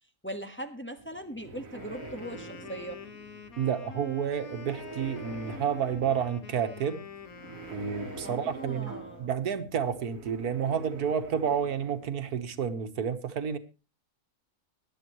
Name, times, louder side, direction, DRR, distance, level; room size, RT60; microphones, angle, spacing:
voice 1, 0.2-3.0 8.2-9.3, right 1 dB, 10° left, 1.4 m, -40 dB
sound 1, 1.0-12.7, right 3 dB, 65° right, 2.1 m, -46 dB
Wind instrument woodwind instrument, 1.7-9.4, left 5 dB, 70° left, 1.8 m, -46 dB
voice 2, 3.6-7.0 7.7-13.6, right 7 dB, 90° right, 1.7 m, -30 dB
21.0 x 11.0 x 3.1 m
omnidirectional pair, 1.6 m